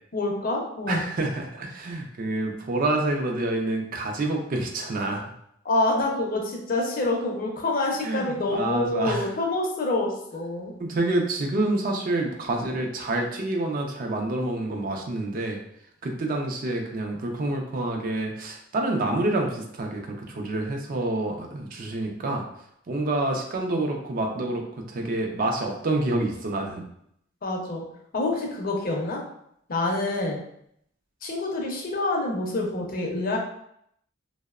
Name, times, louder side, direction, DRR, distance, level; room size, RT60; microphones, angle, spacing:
voice 1, 0.1-1.0 5.6-10.7 27.4-27.8 28.1-29.2 29.7-30.4 31.2-33.4, left 2 dB, 45° left, 0 dB, 0.5 m, -27 dB
voice 2, 0.9-5.2 8.0-9.3 10.8-15.6 16.0-22.5 22.9-26.8, right 2 dB, 45° right, 2 dB, 0.4 m, -27 dB
2.7 x 2.0 x 2.3 m, 0.72 s
head